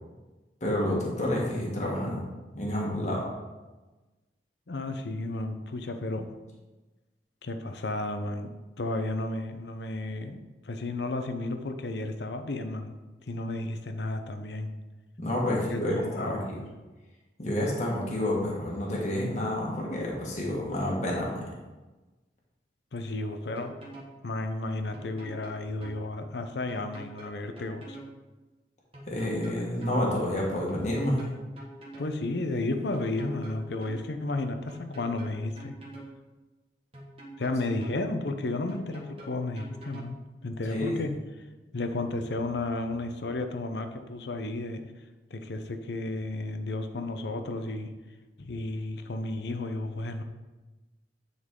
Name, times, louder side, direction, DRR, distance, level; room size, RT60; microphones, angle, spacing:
voice 1, 0.6-2.2 2.5-3.2 15.2-16.6 17.4-21.6 29.1-31.3 40.7-41.0, left 1 dB, 40° left, -3 dB, 1.4 m, -29 dB
voice 2, 4.7-6.3 7.4-8.5 8.8-13.0 13.3-14.7 15.4-16.5 22.9-23.7 24.2-28.0 32.0-35.7 37.4-40.2 40.4-41.1 41.7-44.8 45.3-47.9 48.4-50.2, left 2 dB, 70° left, 7 dB, 0.6 m, -33 dB
sound 1, 23.6-24.1 24.9-26.0 26.7-28.1 28.9-30.0 30.7-32.1 32.9-34.0 34.7-36.1 36.9-38.0 38.7-40.1, right 1 dB, 30° right, 1.4 m, -46 dB
9.5 x 4.0 x 3.7 m, 1.2 s
head